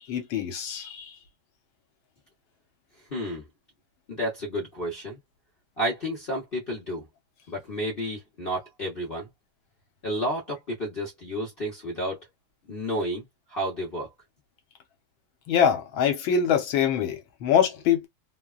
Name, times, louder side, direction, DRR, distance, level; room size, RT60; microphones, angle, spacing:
voice 1, 0.1-1.1 15.5-18.1, left 8 dB, 70° left, 1.6 m, -24 dB
voice 2, 3.1-3.5 4.1-5.2 5.8-7.1 7.5-9.3 10.0-12.2 12.7-13.2 13.5-14.1, equal, 45° left, 0.7 m, -31 dB
3.4 x 2.2 x 2.3 m
omnidirectional pair, 2.3 m